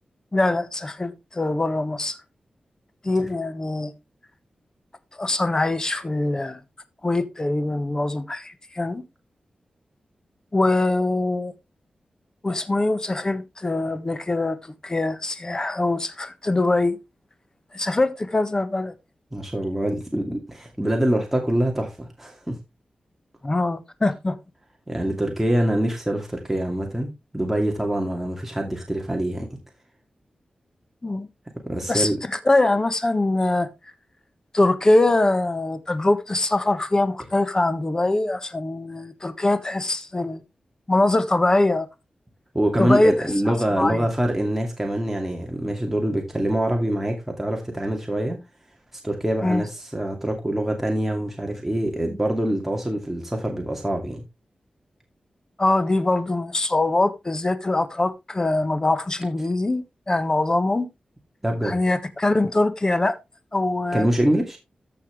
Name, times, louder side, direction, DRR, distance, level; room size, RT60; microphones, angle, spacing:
voice 1, 0.3-2.2 3.0-3.9 5.2-6.6 7.0-9.0 10.5-11.5 12.4-17.0 17.7-18.9 23.4-24.4 31.0-31.3 31.9-33.7 34.5-40.4 40.9-41.9 42.8-43.3 43.8-44.0 49.4-49.6 55.6-60.9 61.6-63.2 63.5-64.1, left 2 dB, 30° left, 1.3 m, -23 dB
voice 2, 19.3-22.6 24.9-29.5 31.7-32.2 42.5-48.4 49.0-54.2 61.4-61.8 63.9-64.6, right 1 dB, 10° right, 2.3 m, -25 dB
14.5 x 5.8 x 3.3 m
wide cardioid pair, 80°, 2 cm